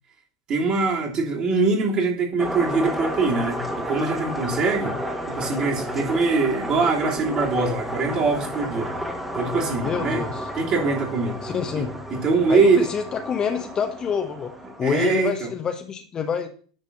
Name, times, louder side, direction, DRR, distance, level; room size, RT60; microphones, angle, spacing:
voice 1, 0.5-4.9 5.3-8.9 9.3-10.3 10.5-11.4 11.7-11.8 12.1-12.9 14.8-15.5, right 4 dB, 40° right, -1 dB, 3.0 m, -23 dB
sound 1, 2.4-15.2, equal, 5° right, 1.6 m, -32 dB
voice 2, 9.8-10.5 11.4-11.9 12.5-14.5 14.8-16.5, left 7 dB, 30° left, 7 dB, 1.0 m, -27 dB
9.8 x 4.0 x 5.4 m, 0.43 s
figure-of-eight pair, 90°, 2 cm